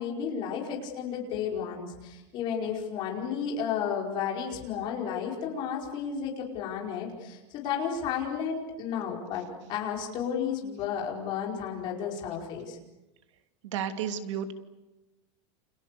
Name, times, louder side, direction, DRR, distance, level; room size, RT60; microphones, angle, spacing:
voice 1, 0.0-12.8, left 7 dB, 30° left, 0 dB, 5.1 m, -32 dB
voice 2, 13.6-14.5, right 8 dB, 85° right, 7 dB, 2.7 m, -32 dB
29.5 x 28.0 x 6.8 m, 1.0 s
supercardioid pair, 180°, 15 cm